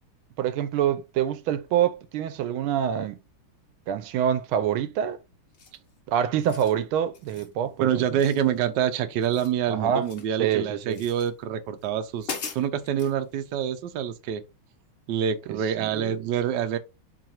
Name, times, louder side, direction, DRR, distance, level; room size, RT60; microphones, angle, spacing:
voice 1, 0.4-3.2 3.9-5.2 6.1-8.0 9.7-10.1 10.4-11.0 15.5-16.2, right 9 dB, 85° right, 1.5 m, -26 dB
sound 1, 5.5-5.9 6.3-6.8 7.1-7.5 8.2-8.9 9.1-10.4 10.9-11.3 11.8-11.9 12.2-13.2, left 5 dB, 60° left, 0.6 m, -40 dB
voice 2, 7.8-14.4 15.1-16.8, right 9 dB, 70° right, 1.2 m, -26 dB
4.7 x 2.5 x 4.3 m
omnidirectional pair, 2.2 m